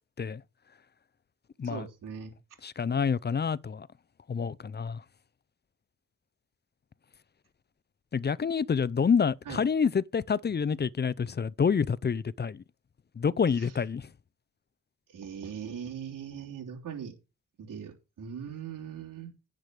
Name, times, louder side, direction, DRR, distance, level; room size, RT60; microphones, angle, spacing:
voice 1, 1.6-2.3 9.4-9.6 13.6-13.7 15.1-17.1 17.6-19.3, right 7 dB, 85° right, 3.4 m, -40 dB
voice 2, 2.6-3.9 4.3-5.0 8.1-12.6 13.2-14.1, left 6 dB, 35° left, 0.6 m, -28 dB
10.5 x 4.9 x 7.7 m
cardioid pair, 80°, 31 cm